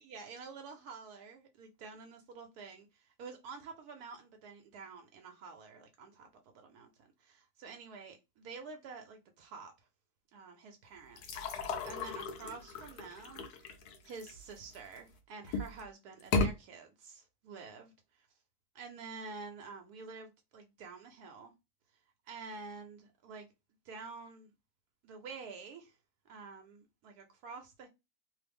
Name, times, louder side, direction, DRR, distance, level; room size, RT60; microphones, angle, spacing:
voice 1, 0.0-6.3 6.5-9.7 10.3-13.7 14.0-18.3 18.7-21.5 22.3-23.5 23.8-24.5 25.0-25.9 26.3-27.9, right 4 dB, 80° right, 1.1 m, -49 dB
sound 1, 11.2-15.0 15.4-15.8 16.2-16.5, left 3 dB, 80° left, 1.2 m, -35 dB
3.0 x 2.0 x 3.3 m
omnidirectional pair, 1.7 m